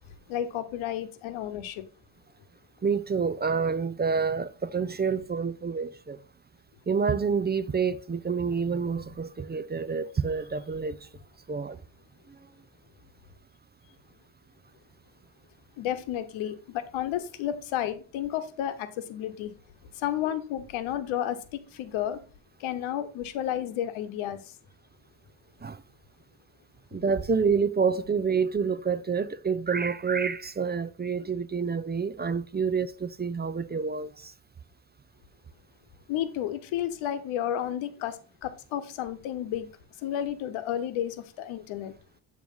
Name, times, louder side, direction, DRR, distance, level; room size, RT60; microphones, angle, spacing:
voice 1, 0.3-1.8 15.8-19.5 20.0-21.4 21.7-22.2 22.6-24.4 36.1-39.7 40.0-41.9, left 11 dB, 80° left, 1.0 m, -32 dB
voice 2, 2.8-6.2 6.9-11.0 11.5-11.8 25.6-25.8 26.9-34.3, right 5 dB, 20° right, 0.5 m, -28 dB
8.5 x 3.2 x 5.4 m
supercardioid pair, 65°, 47 cm